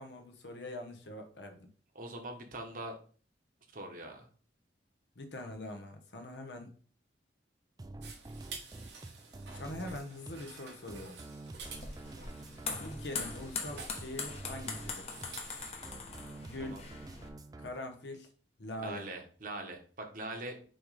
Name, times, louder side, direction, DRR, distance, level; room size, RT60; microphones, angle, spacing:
voice 1, 0.0-1.7 5.1-6.7 9.5-11.2 12.7-15.2 16.4-16.8 17.6-18.3 18.6-19.0, left 1 dB, 75° left, 5 dB, 1.2 m, -43 dB
voice 2, 1.9-3.0 3.7-4.3 16.6-16.8 18.8-20.7, right 2 dB, 50° right, 4 dB, 1.2 m, -42 dB
sound 1, 7.8-17.7, right 2 dB, 20° right, 0.4 m, -48 dB
sound 2, 8.0-15.7, right 4 dB, 75° right, 1.4 m, -51 dB
sound 3, 11.6-17.3, left 4 dB, 35° left, 1.0 m, -42 dB
6.1 x 3.2 x 5.0 m, 0.42 s
head